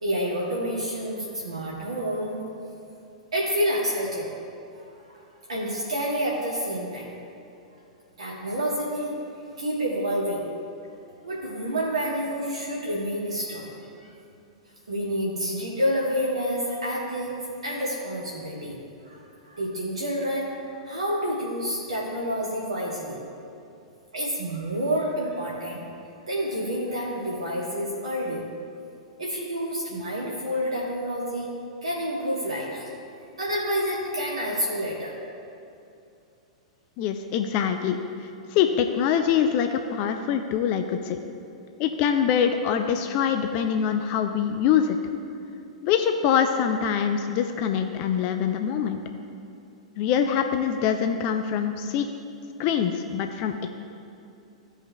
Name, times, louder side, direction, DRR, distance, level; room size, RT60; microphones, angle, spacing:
voice 1, 0.0-2.4 3.3-4.3 4.7-5.2 5.5-7.1 8.2-9.2 9.6-10.4 11.2-13.7 14.0-14.1 14.9-18.8 19.0-23.2 24.1-25.9 26.3-28.4 29.2-31.5 31.8-32.9 33.4-35.1, equal, 70° right, -4 dB, 1.3 m, -28 dB
voice 2, 37.0-38.0 38.5-41.2 41.8-45.0 45.8-49.0 50.0-52.1 52.6-53.7, left 8 dB, 40° left, 6 dB, 0.4 m, -24 dB
15.0 x 5.4 x 2.2 m, 2.6 s
figure-of-eight pair, 100°, 3 cm